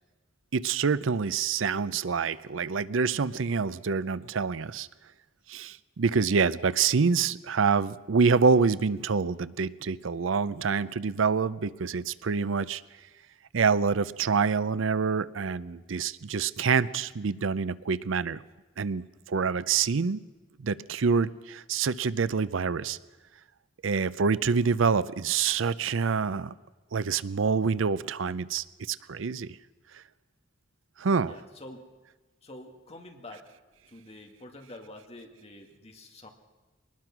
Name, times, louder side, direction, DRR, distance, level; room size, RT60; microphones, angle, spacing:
voice 1, 0.5-4.9 5.5-12.8 13.5-18.4 18.8-20.2 20.6-23.0 23.8-26.5 26.9-29.6 29.9-30.0 31.0-31.3, right 5 dB, 70° right, 18 dB, 0.5 m, -26 dB
voice 2, 31.3-31.8 32.4-33.5 33.9-36.3, left 1 dB, 30° left, 3 dB, 2.2 m, -47 dB
22.0 x 20.0 x 6.0 m, 1.2 s
head